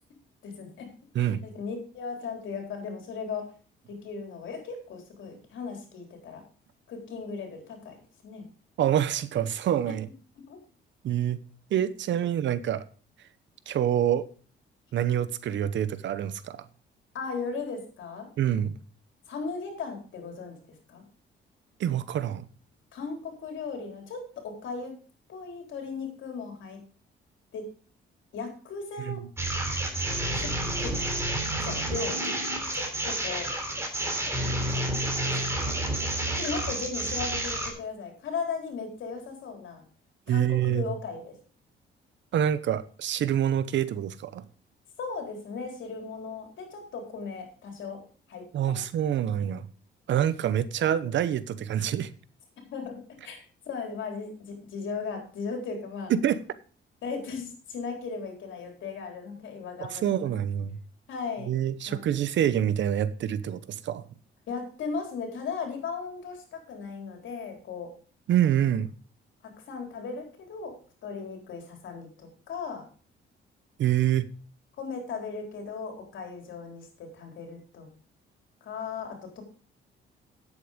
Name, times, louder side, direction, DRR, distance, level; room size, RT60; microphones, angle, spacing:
voice 1, 0.4-0.9 1.2-3.5 3.9-6.4 6.9-7.9 8.2-8.4 10.5-10.6 17.1-18.3 19.3-20.5 20.9-21.0 22.9-25.0 25.3-26.8 27.5-27.6 28.3-29.2 30.3-30.5 30.8-30.9 31.6-32.3 32.7-33.5 34.6-35.8 36.1-39.8 40.3-41.3 45.0-48.0 48.3-48.8 52.7-56.1 57.0-60.3 61.1-61.5 61.9-62.0 64.5-67.9 69.4-70.7 71.0-72.8 74.8-77.9 78.6-79.4, left 5 dB, 75° left, 3.9 m, -37 dB
voice 2, 8.8-10.1 11.0-11.4 11.7-12.8 13.7-14.3 14.9-16.6 18.4-18.8 21.8-22.5 29.0-29.2 40.3-40.8 42.3-44.4 48.5-49.7 50.1-52.1 56.1-56.4 59.8-60.8 61.5-64.0 68.3-68.9 73.8-74.3, right 10 dB, 65° right, 0.9 m, -26 dB
sound 1, 29.4-37.7, right 1 dB, 15° right, 3.6 m, -29 dB
9.7 x 8.3 x 5.1 m
cardioid pair, 90°, 20 cm